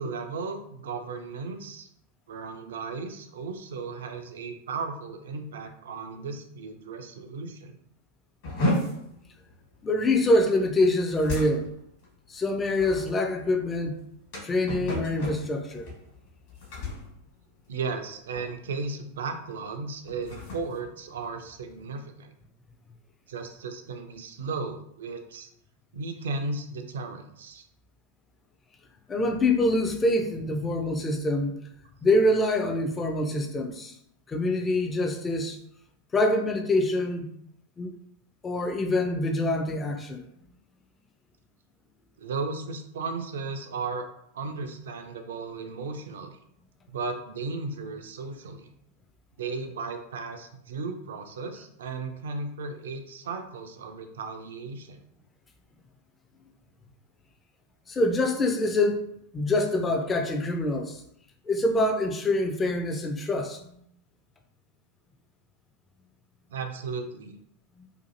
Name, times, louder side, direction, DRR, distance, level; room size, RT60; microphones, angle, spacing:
voice 1, 0.0-1.9 2.3-7.8 17.7-22.3 23.3-25.5 25.9-27.7 42.2-44.1 44.3-46.4 46.9-48.7 49.4-55.0 66.5-67.3, right 4 dB, 60° right, 0.3 m, -35 dB
sound 1, 8.4-18.1 18.3-18.7 19.1-19.3 19.9-21.8, left 1 dB, 55° left, 1.2 m, -34 dB
voice 2, 9.8-11.7 12.3-14.0 14.4-15.9 29.1-31.6 32.0-33.9 34.3-35.6 36.1-37.3 37.8-37.9 38.4-40.2 57.9-59.1 59.3-61.0 61.5-63.7, left 1 dB, 20° left, 0.4 m, -25 dB
2.6 x 2.4 x 2.6 m
figure-of-eight pair, 90°, 0 cm